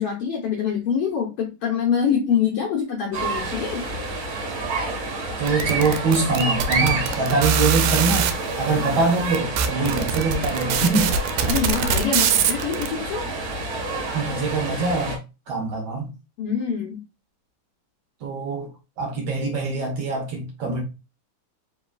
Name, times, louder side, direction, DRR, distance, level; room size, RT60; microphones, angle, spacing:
voice 1, 0.0-3.8 11.5-13.2 16.4-17.0, left 7 dB, 75° left, 1.4 m, -25 dB
sound 1, 3.1-15.2, right 3 dB, 50° right, 1.8 m, -29 dB
voice 2, 5.4-8.3 8.6-11.1 14.1-15.2 15.5-16.1 18.2-18.7 19.0-20.8, right 3 dB, 65° right, 1.7 m, -23 dB
sound 2, 5.5-8.3 9.0-9.1 9.3-12.9, right 7 dB, 80° right, 2.0 m, -22 dB
5.0 x 3.9 x 2.3 m
omnidirectional pair, 3.7 m